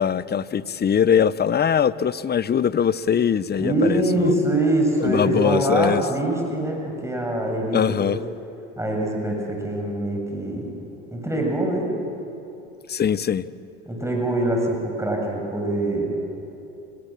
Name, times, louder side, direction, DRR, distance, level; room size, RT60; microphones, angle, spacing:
voice 1, 0.0-4.3 5.0-6.0 7.7-8.2 12.9-13.5, left 8 dB, 30° left, 1.0 m, -21 dB
voice 2, 3.6-8.1 8.8-10.7 11.1-11.9 13.9-16.1, right 1 dB, 10° right, 7.7 m, -24 dB
28.0 x 26.5 x 7.7 m
hypercardioid pair, 70°, 33 cm